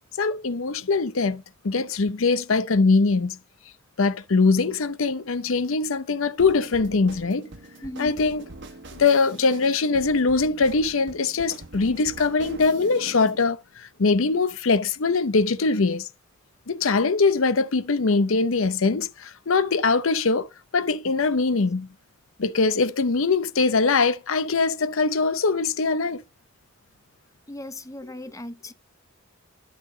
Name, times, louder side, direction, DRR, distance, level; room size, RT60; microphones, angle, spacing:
voice 1, 0.2-3.4 4.0-7.5 8.0-8.5 9.0-16.1 16.7-21.9 22.4-26.2, left 4 dB, 70° left, 0.7 m, -22 dB
sound 1, 6.4-13.5, right 2 dB, 55° right, 1.4 m, -43 dB
voice 2, 7.8-8.2 27.5-28.7, left 1 dB, 15° left, 0.7 m, -37 dB
11.0 x 5.9 x 3.9 m
head